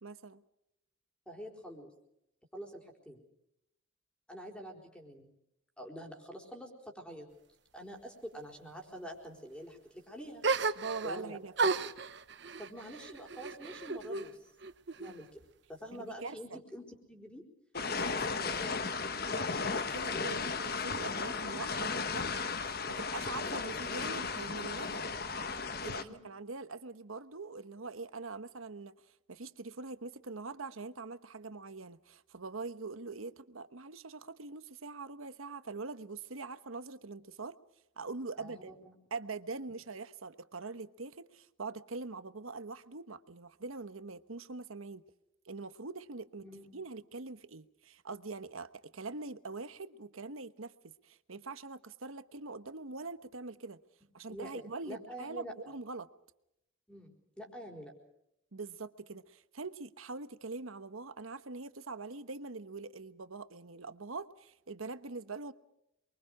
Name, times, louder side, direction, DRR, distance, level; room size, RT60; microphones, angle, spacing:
voice 1, 0.0-0.4 10.8-11.5 16.0-16.6 17.8-18.1 19.3-25.1 25.8-37.6 38.0-38.7 39.1-45.0 45.4-53.8 54.1-56.1 58.5-65.5, right 3 dB, 90° right, 1.2 m, -43 dB
voice 2, 1.3-1.9 2.5-3.2 4.3-5.3 5.8-7.3 7.7-10.4 11.0-11.4 12.6-14.5 15.0-15.4 15.7-17.4 17.9-18.8 19.2-19.4 19.8-20.6 26.0-26.2 38.4-38.9 46.4-46.7 54.3-55.5 56.9-57.9, equal, 5° left, 4.5 m, -47 dB
sound 1, 10.4-11.2 11.6-14.3 14.6-15.4, right 4 dB, 55° right, 1.0 m, -34 dB
sound 2, 17.7-26.0, left 4 dB, 45° left, 1.3 m, -35 dB
28.5 x 23.0 x 5.0 m
head